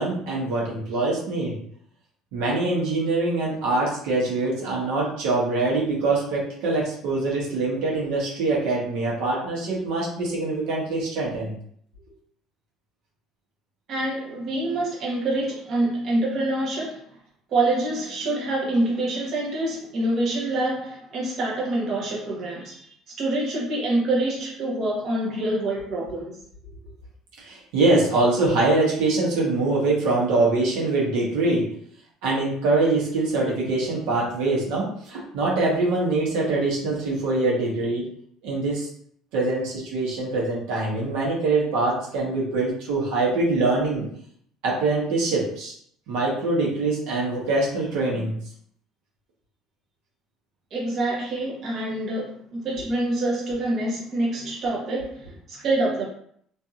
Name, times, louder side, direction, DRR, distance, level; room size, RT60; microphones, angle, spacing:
voice 1, 0.0-1.6 2.3-11.5 27.4-31.7 32.2-38.1 38.4-38.9 39.3-44.1 44.6-45.7 46.1-48.3, right 2 dB, 80° right, -4 dB, 1.0 m, -24 dB
voice 2, 13.9-17.0 17.5-26.4 50.7-56.1, right 2 dB, 50° right, -5 dB, 0.9 m, -26 dB
2.7 x 2.5 x 2.4 m, 0.64 s
cardioid pair, 115°, 0 cm